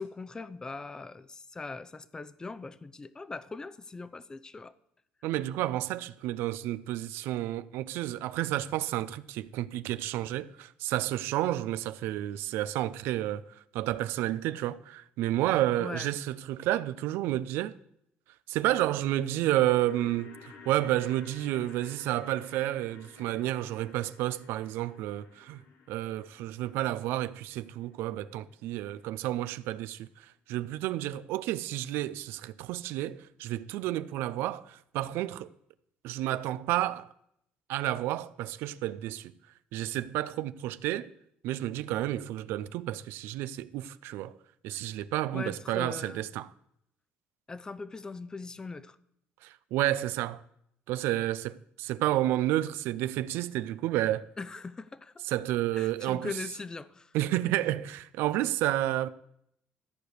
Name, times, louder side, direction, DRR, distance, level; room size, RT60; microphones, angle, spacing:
voice 1, 0.0-4.7 15.8-16.1 45.3-46.2 47.5-49.0 54.4-55.2 55.8-57.1, left 3 dB, 20° left, 0.5 m, -40 dB
voice 2, 5.2-13.4 13.7-17.7 18.5-25.6 25.9-35.5 36.0-37.1 37.7-39.3 39.7-41.1 41.4-44.3 44.6-46.5 49.4-50.4 50.9-54.3 55.3-56.3 57.1-59.1, right 14 dB, 80° right, 0.5 m, -31 dB
sound 1, 19.0-29.2 29.5-29.6, left 5 dB, 75° left, 1.4 m, -54 dB
13.5 x 5.0 x 8.0 m
cardioid pair, 105°, 4 cm